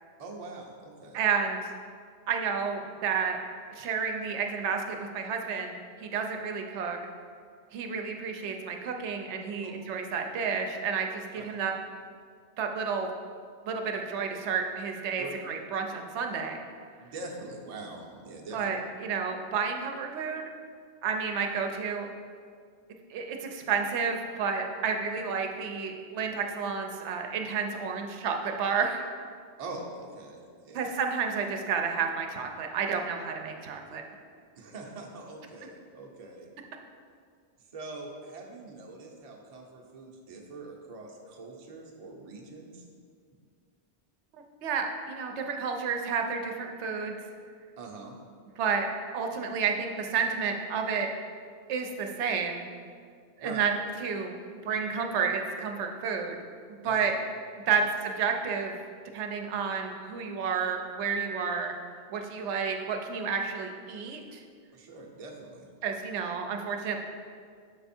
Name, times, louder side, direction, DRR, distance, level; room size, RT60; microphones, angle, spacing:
voice 1, 0.2-1.2 9.6-9.7 11.4-11.6 15.2-15.3 17.0-18.7 29.6-31.0 34.6-36.5 37.7-42.9 47.8-48.2 53.4-53.7 56.8-57.1 57.7-57.9 64.7-65.7, right 3 dB, 40° right, 0 dB, 0.7 m, -43 dB
voice 2, 1.1-1.6 2.3-3.4 3.7-7.0 7.7-11.7 12.6-13.1 13.6-16.6 18.5-20.5 21.0-22.1 23.1-29.1 30.7-34.0 44.6-47.1 48.6-48.9 49.1-51.1 51.7-52.7 53.4-53.7 54.0-54.3 54.6-56.4 56.8-57.1 57.6-58.8 59.1-61.7 62.1-64.4 65.8-67.0, right 6 dB, 85° right, 4 dB, 0.9 m, -31 dB
6.5 x 3.4 x 4.2 m, 2.1 s
omnidirectional pair, 1.1 m